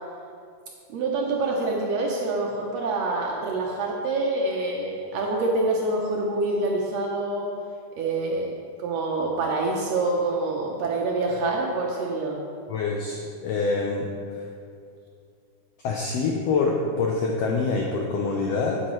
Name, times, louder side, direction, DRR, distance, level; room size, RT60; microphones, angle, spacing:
voice 1, 0.9-7.5 8.0-8.5 8.8-12.4, right 2 dB, 70° right, -1 dB, 1.6 m, -26 dB
voice 2, 12.7-14.4 15.8-18.8, left 4 dB, 90° left, 0 dB, 1.4 m, -26 dB
9.3 x 8.7 x 3.1 m, 2.4 s
omnidirectional pair, 3.7 m